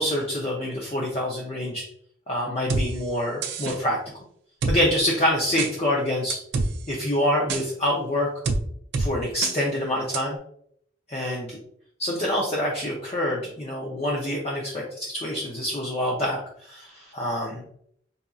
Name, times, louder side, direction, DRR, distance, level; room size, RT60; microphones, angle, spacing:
voice 1, 0.0-1.9 2.3-4.0 4.7-6.4 6.9-8.3 9.0-10.4 11.1-11.6 12.0-17.6, left 1 dB, 30° left, -3 dB, 0.5 m, -26 dB
sound 1, 2.7-2.8 3.4-3.8 4.6-4.8 5.6-5.7 6.3-6.7 7.5-7.6 8.4-8.6 8.9-9.1 9.4-9.5 10.1-10.2, right 3 dB, 55° right, 0.4 m, -25 dB
4.0 x 2.5 x 2.3 m, 0.66 s
head